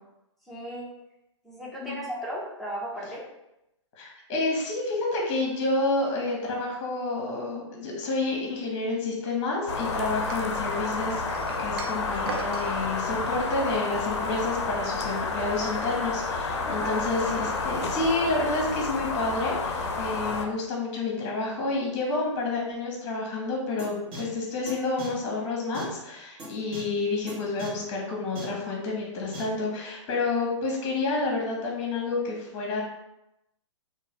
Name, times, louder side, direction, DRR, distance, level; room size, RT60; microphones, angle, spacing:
voice 1, 0.5-0.9 1.4-3.2 16.5-17.1, right 1 dB, ahead, -6 dB, 0.7 m, -36 dB
voice 2, 4.0-11.2 11.6-32.8, left 3 dB, 35° left, -1 dB, 1.0 m, -29 dB
sound 1, 9.7-20.5, left 3 dB, 60° left, 0.5 m, -30 dB
sound 2, 10.3-12.7, right 3 dB, 50° right, 0.5 m, -38 dB
sound 3, 23.8-23.9 24.1-24.2 24.7-24.8 25.0-25.1 25.7-25.8 26.4-26.5 26.7-26.8 27.3-27.4 27.6-27.7 28.4-28.5 29.3-29.4, right 1 dB, 30° right, 1.2 m, -38 dB
2.9 x 2.4 x 2.9 m, 0.90 s
figure-of-eight pair, 120°, 16 cm